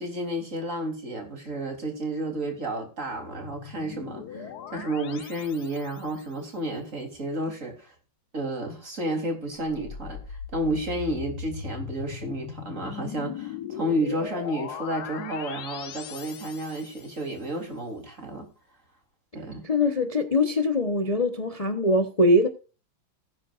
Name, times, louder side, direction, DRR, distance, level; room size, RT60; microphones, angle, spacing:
voice 1, 0.0-7.9 8.3-18.5 19.3-19.7, right 1 dB, 40° right, 3.8 m, -31 dB
sound 1, 3.1-6.2 9.6-17.2, left 8 dB, 60° left, 1.3 m, -39 dB
voice 2, 19.6-22.5, left 1 dB, 25° left, 0.9 m, -22 dB
19.0 x 10.0 x 2.5 m
omnidirectional pair, 2.1 m